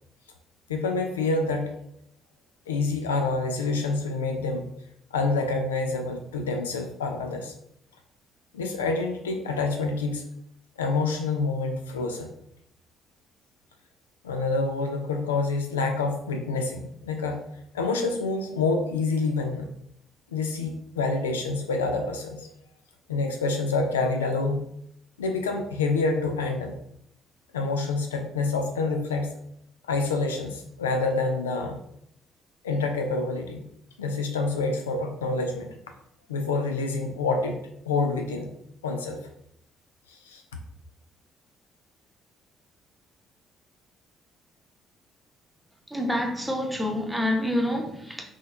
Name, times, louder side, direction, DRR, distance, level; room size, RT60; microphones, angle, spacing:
voice 1, 0.7-1.7 2.7-4.7 5.1-7.5 8.5-10.2 10.8-12.3 14.2-17.4 17.7-19.7 20.3-22.5 23.1-24.7 25.2-26.7 27.5-29.3 29.9-31.8 32.6-33.7 34.0-35.7 36.3-38.5 38.8-39.2 40.1-40.4, left 3 dB, 80° left, 4 dB, 0.4 m, -27 dB
voice 2, 45.9-48.2, left 1 dB, 5° right, 1 dB, 0.9 m, -27 dB
4.0 x 3.0 x 2.5 m, 0.73 s
figure-of-eight pair, 45°, 0 cm